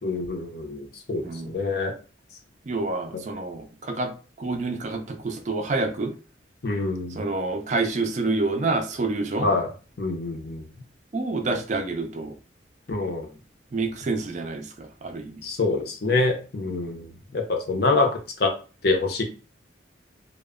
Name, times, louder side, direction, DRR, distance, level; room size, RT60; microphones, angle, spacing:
voice 1, 0.0-1.9 6.6-7.2 9.4-9.7 10.0-10.6 12.9-13.3 15.4-18.1 18.4-18.5 18.8-19.2, left 3 dB, 55° left, 3 dB, 0.5 m, -25 dB
voice 2, 1.2-1.6 2.7-4.1 4.4-6.1 7.1-9.5 11.1-12.4 13.7-15.4, right 3 dB, 40° right, 5 dB, 0.4 m, -28 dB
2.0 x 2.0 x 3.5 m, 0.35 s
head